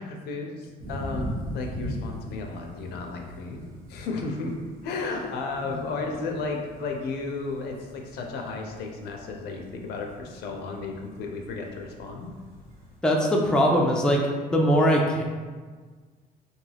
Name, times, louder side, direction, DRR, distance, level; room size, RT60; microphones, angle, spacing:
voice 1, 0.0-3.6 3.9-12.3, left 3 dB, 75° left, 2 dB, 0.5 m, -33 dB
sound 1, 0.8-13.0, equal, 60° right, 0.8 m, -41 dB
voice 2, 13.0-14.2 14.5-15.2, equal, 5° left, -1 dB, 0.3 m, -21 dB
2.3 x 2.2 x 3.2 m, 1.5 s
cardioid pair, 110°, 17 cm